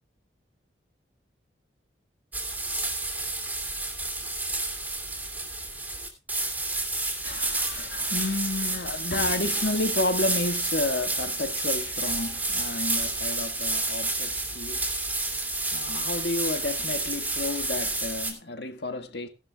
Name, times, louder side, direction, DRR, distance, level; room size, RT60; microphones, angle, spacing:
sound 1, 2.3-18.3, right 2 dB, 10° right, 2.6 m, -30 dB
voice 1, 7.2-19.3, left 2 dB, 65° left, 1.7 m, -31 dB
17.0 x 11.5 x 2.4 m
head